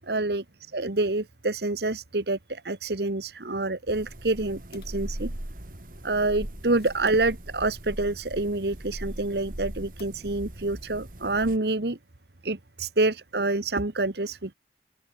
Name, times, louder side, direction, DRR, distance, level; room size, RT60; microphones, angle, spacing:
voice 1, 0.1-0.4 0.7-5.3 6.0-12.0 12.4-14.5, right 2 dB, 65° right, 1.5 m, -27 dB
sound 1, 3.9-11.6, right 1 dB, 50° right, 2.3 m, -39 dB
sound 2, 4.7-5.7 6.4-7.3 10.0-10.6 10.9-11.0 11.2-11.3, left 2 dB, 60° left, 4.4 m, -52 dB
open air
head